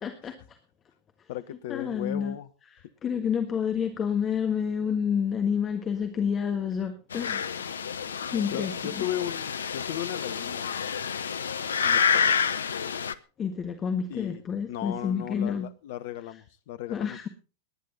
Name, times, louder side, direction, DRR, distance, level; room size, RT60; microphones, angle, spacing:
voice 1, 0.0-0.6 1.7-2.3 3.0-7.8 8.3-9.0 13.4-15.7 16.9-17.3, left 7 dB, 25° left, 1.6 m, -29 dB
voice 2, 1.3-2.5 3.1-3.3 8.5-11.1 11.8-12.4 14.1-17.3, left 12 dB, 50° left, 1.1 m, -36 dB
sound 1, 7.1-13.1, left 7 dB, 70° left, 0.7 m, -28 dB
19.0 x 10.5 x 4.1 m
figure-of-eight pair, 90°, 0 cm